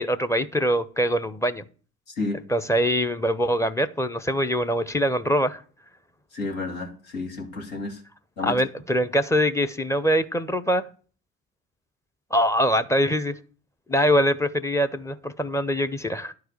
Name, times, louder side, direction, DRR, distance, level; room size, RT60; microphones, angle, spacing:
voice 1, 0.0-1.6 2.5-5.6 8.4-10.8 12.3-13.3 13.9-16.3, equal, 5° left, 10 dB, 0.8 m, -23 dB
voice 2, 6.3-8.0 8.4-8.5, left 3 dB, 75° left, 0 dB, 2.7 m, -31 dB
11.0 x 4.7 x 8.0 m, 0.40 s
figure-of-eight pair, 60°, 41 cm